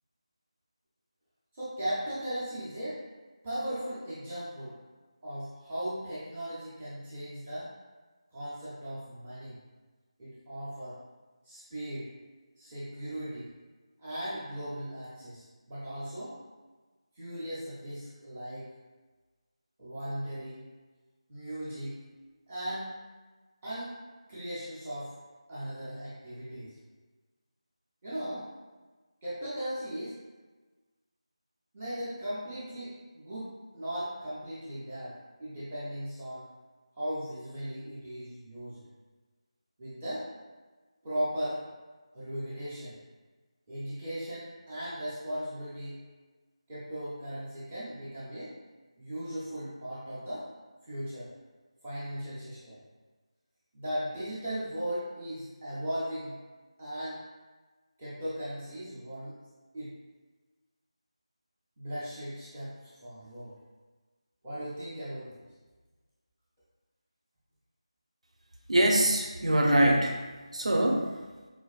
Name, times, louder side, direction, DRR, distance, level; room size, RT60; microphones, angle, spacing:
voice 1, 1.5-3.0 3.4-4.8 5.2-7.7 8.3-9.6 10.2-11.0 11.5-12.1 12.6-13.5 14.0-16.3 17.2-18.7 19.8-20.6 21.3-22.0 22.5-22.9 23.6-23.9 24.3-25.1 25.5-26.7 28.0-28.5 29.2-30.2 31.7-36.4 37.0-38.8 39.8-40.3 41.0-41.6 42.1-42.9 43.7-46.0 46.7-48.5 49.0-50.5 50.8-51.3 51.8-52.8 53.7-56.3 56.8-57.2 58.0-59.3 59.7-59.9 61.8-63.5 64.4-65.4, equal, 10° right, -12 dB, 0.5 m, -37 dB
voice 2, 68.7-70.3 70.5-71.1, right 1 dB, 85° right, 1 dB, 0.7 m, -24 dB
4.6 x 2.5 x 2.3 m, 1.3 s
figure-of-eight pair, 175°, 3 cm